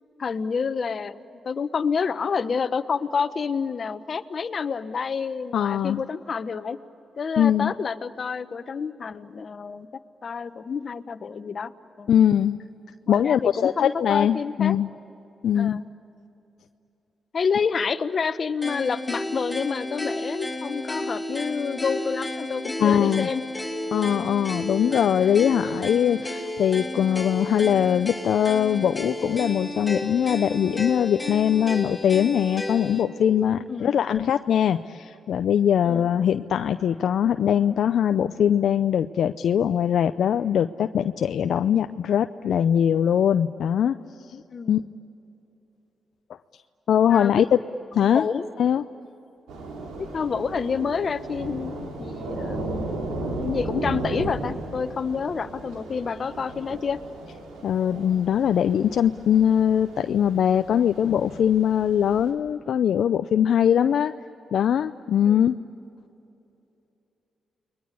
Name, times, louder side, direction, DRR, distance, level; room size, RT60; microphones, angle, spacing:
voice 1, 0.2-1.2 1.4-6.8 7.2-9.9 10.2-11.7 12.0-12.3 13.1-14.8 15.5-15.8 17.3-23.4 33.7-34.0 35.8-36.1 44.5-44.8 47.1-47.5 48.0-48.4 50.0-52.9 53.4-57.0 65.2-65.5, left 5 dB, 55° left, 12 dB, 1.2 m, -28 dB
voice 2, 5.5-6.0 7.4-7.7 12.1-12.6 13.1-14.9 15.4-15.8 22.8-23.3 23.9-44.0 44.3-44.4 44.7-44.8 46.9-47.4 47.9-48.2 48.6-48.8 57.6-64.1 64.5-65.6, left 9 dB, 70° left, 9 dB, 0.5 m, -21 dB
sound 1, 18.6-33.1, left 1 dB, 20° left, 5.7 m, -32 dB
Thunder / Rain, 49.5-62.3, right 2 dB, 80° right, 3.6 m, -35 dB
30.0 x 22.0 x 8.4 m, 2.9 s
supercardioid pair, 50°, 0 cm